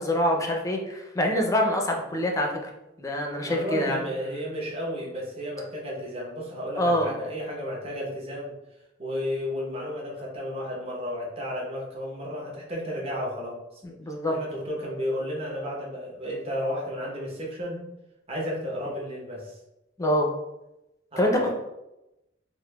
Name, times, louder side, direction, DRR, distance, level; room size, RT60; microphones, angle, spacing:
voice 1, 0.0-2.6 3.0-4.0 6.8-7.1 13.8-14.3 20.0-20.3 21.2-21.5, equal, 15° left, 1 dB, 0.4 m, -25 dB
voice 2, 3.4-8.6 9.0-13.8 14.3-17.8 18.3-19.6 21.1-21.5, equal, 30° right, -3 dB, 0.8 m, -33 dB
4.8 x 2.0 x 2.2 m, 0.94 s
head